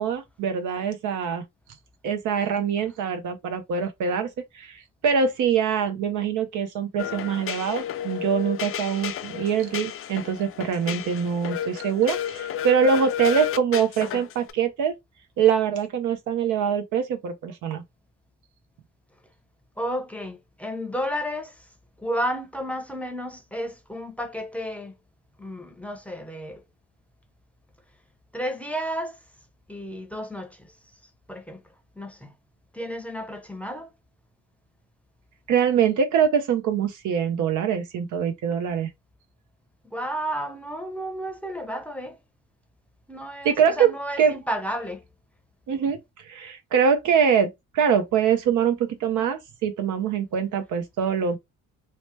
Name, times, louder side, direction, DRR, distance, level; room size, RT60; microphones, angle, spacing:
voice 1, 0.0-1.4 2.0-4.3 4.5-14.9 15.4-17.8 35.5-38.9 43.4-43.9 44.2-44.4 45.7-46.0 46.3-51.4, right 7 dB, 80° right, 0.8 m, -24 dB
sound 1, 7.0-14.5, left 10 dB, 45° left, 0.4 m, -32 dB
voice 2, 19.8-21.7 22.0-25.0 25.4-26.6 28.3-29.2 29.7-30.7 31.3-31.6 32.0-32.3 32.7-33.9 39.8-42.2 43.1-45.0, equal, 5° left, 0.6 m, -32 dB
2.9 x 2.1 x 3.2 m
cardioid pair, 90°, 30 cm